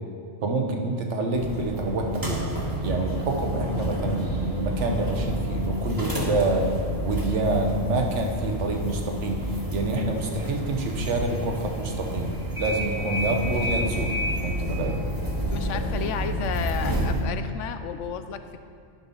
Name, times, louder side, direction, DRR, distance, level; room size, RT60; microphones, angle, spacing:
voice 1, 0.4-2.4 2.8-6.7 7.0-12.3 12.6-14.1 14.4-15.0, right 2 dB, 75° right, 3 dB, 1.3 m, -27 dB
sound 1, 1.3-17.2, equal, 20° right, 1.4 m, -29 dB
voice 2, 15.5-18.6, left 7 dB, 90° left, 9 dB, 1.0 m, -32 dB
10.5 x 5.9 x 5.5 m, 2.2 s
omnidirectional pair, 1.2 m